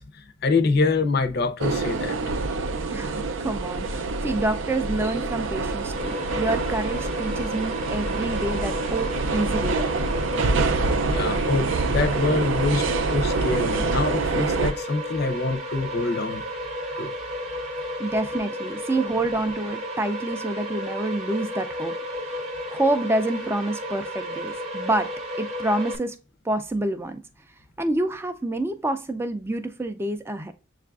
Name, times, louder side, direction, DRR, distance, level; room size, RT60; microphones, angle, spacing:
voice 1, 0.0-2.2 11.1-16.4 17.0-17.1, left 3 dB, 55° left, 0.6 m, -25 dB
sound 1, 1.6-14.7, right 3 dB, 70° right, 0.5 m, -26 dB
voice 2, 2.9-9.9 18.0-22.2 22.7-25.1 25.4-26.2 26.4-27.2 27.8-30.5, right 2 dB, 10° right, 0.3 m, -27 dB
sound 2, 6.0-26.0, equal, 35° right, 0.7 m, -33 dB
7.3 x 2.4 x 2.3 m
head